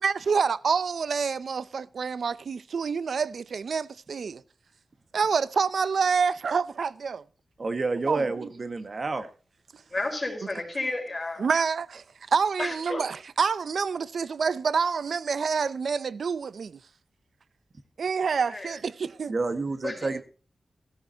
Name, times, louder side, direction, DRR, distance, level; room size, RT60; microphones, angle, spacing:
voice 1, 0.0-4.4 5.1-7.2 8.0-8.5 11.4-16.8 18.0-19.3, right 5 dB, 80° right, 0.5 m, -27 dB
voice 2, 7.6-9.2 19.3-20.2, right 3 dB, 50° right, 1.6 m, -29 dB
voice 3, 9.9-11.4 12.6-13.0 18.5-18.8 19.8-20.1, left 2 dB, 25° left, 4.5 m, -32 dB
16.5 x 13.5 x 2.8 m
wide cardioid pair, 95°, 0 cm